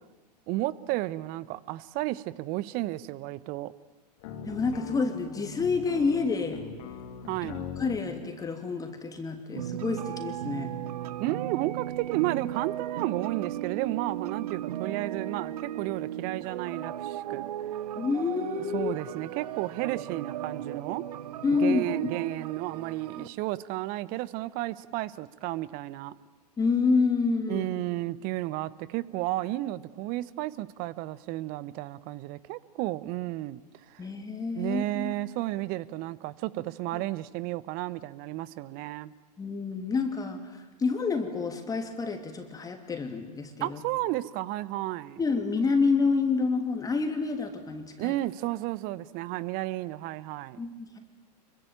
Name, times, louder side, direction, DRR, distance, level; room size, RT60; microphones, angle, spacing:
voice 1, 0.5-3.7 7.3-7.7 11.2-17.5 18.7-21.0 21.6-26.1 27.5-33.6 33.9-34.0 34.6-39.1 43.6-45.2 48.0-50.6, right 17 dB, 45° right, 19 dB, 1.0 m, -32 dB
sound 1, 4.2-8.0, left 7 dB, 55° left, 3.3 m, -40 dB
voice 2, 4.5-6.6 7.8-10.7 18.0-18.9 21.4-22.1 23.2-23.3 26.6-27.7 34.0-35.1 36.9-37.0 39.4-43.8 45.2-48.1 50.6-51.0, left 4 dB, 15° left, 5 dB, 2.9 m, -28 dB
sound 2, 9.6-23.3, right 12 dB, 70° right, 0.9 m, -36 dB
25.5 x 23.5 x 9.0 m, 1.2 s
hypercardioid pair, 105°, 21 cm